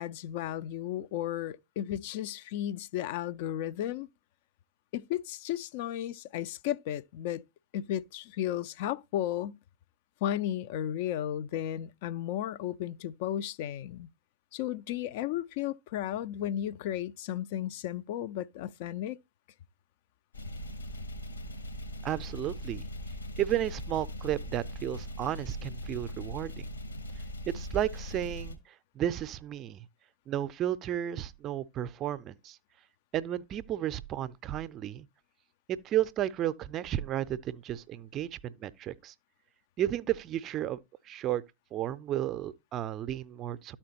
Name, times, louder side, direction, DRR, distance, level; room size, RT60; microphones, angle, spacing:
voice 1, 0.0-4.1 4.9-7.4 7.7-9.6 10.2-14.1 14.5-19.2, left 11 dB, 50° left, 0.3 m, -34 dB
sound 1, 20.3-28.5, equal, 80° left, 1.6 m, -40 dB
voice 2, 22.0-22.8 23.4-26.6 27.5-28.6 29.0-29.8 30.3-32.6 33.1-35.1 35.7-39.1 39.8-40.8 41.1-41.4 41.7-43.8, right 12 dB, 35° right, 0.5 m, -33 dB
13.0 x 4.4 x 2.9 m
figure-of-eight pair, 90°, 0 cm